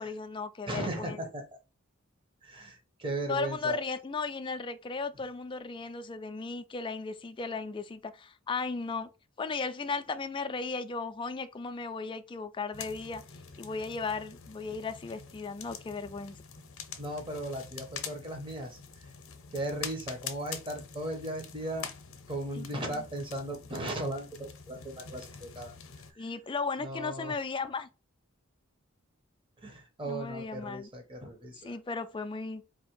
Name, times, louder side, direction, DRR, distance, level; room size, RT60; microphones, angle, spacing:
voice 1, 0.0-1.2 3.3-9.1 9.4-13.2 13.6-16.4 22.6-23.0 26.2-27.9 30.0-30.9 31.6-32.6, left 4 dB, 25° left, 0.3 m, -36 dB
voice 2, 0.7-1.4 2.4-3.8 14.7-14.8 17.0-19.1 19.5-21.9 22.3-25.7 26.1-26.3 26.8-27.3 29.6-31.8, right 1 dB, 25° right, 1.1 m, -37 dB
sound 1, 12.7-26.1, left 7 dB, 70° left, 0.7 m, -45 dB
4.2 x 2.8 x 3.0 m
head